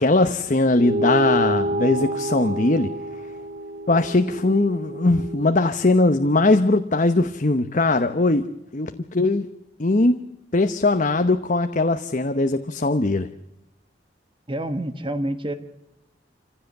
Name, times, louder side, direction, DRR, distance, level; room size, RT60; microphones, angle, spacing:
voice 1, 0.0-2.9 3.9-8.4 8.7-9.4 9.8-10.2 10.5-13.3, left 2 dB, 45° left, 9 dB, 0.9 m, -20 dB
sound 1, 0.7-5.6, right 1 dB, 50° right, 2.2 m, -28 dB
voice 2, 14.5-15.5, right 1 dB, 30° right, 9 dB, 1.3 m, -27 dB
27.5 x 16.0 x 8.0 m, 0.86 s
head